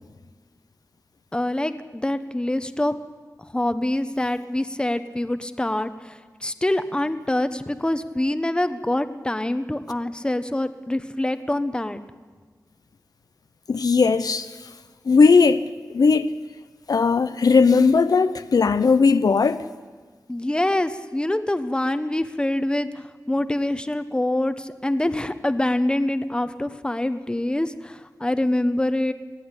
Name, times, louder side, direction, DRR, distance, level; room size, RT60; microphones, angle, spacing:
voice 1, 1.3-2.9 3.5-12.0 20.3-29.1, left 1 dB, 15° left, 1.0 m, -25 dB
voice 2, 13.7-14.5 15.1-15.6 15.9-16.3 16.9-19.6, left 4 dB, 70° left, 0.7 m, -17 dB
20.0 x 15.5 x 9.8 m
wide cardioid pair, 90°, 7 cm